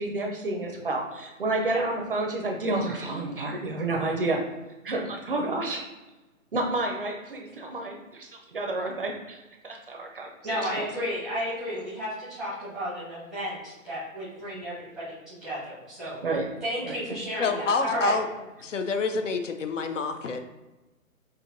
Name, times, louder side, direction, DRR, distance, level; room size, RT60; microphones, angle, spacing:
voice 1, 0.0-4.4 4.8-5.8 6.5-9.4 9.6-10.7 16.2-16.4 16.8-17.0, right 2 dB, 40° right, 2 dB, 0.5 m, -30 dB
voice 2, 10.4-16.2 16.6-18.1, equal, ahead, -10 dB, 0.7 m, -33 dB
voice 3, 17.4-18.3 18.6-20.4, left 4 dB, 65° left, 7 dB, 0.5 m, -27 dB
5.7 x 2.6 x 2.5 m, 1.1 s
figure-of-eight pair, 135°, 42 cm